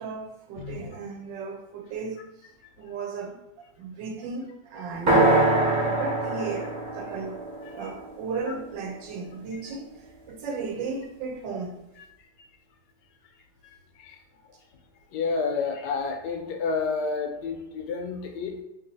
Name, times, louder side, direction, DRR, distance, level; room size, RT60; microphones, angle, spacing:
voice 1, 0.0-2.5 2.8-3.4 3.8-5.5 5.9-7.4 7.7-11.8, right 4 dB, 85° right, 1.2 m, -35 dB
sound 1, 5.1-9.0, right 2 dB, 35° right, 1.0 m, -24 dB
voice 2, 13.6-14.2 15.1-18.6, left 4 dB, 75° left, 1.1 m, -30 dB
3.0 x 2.7 x 3.9 m
omnidirectional pair, 1.9 m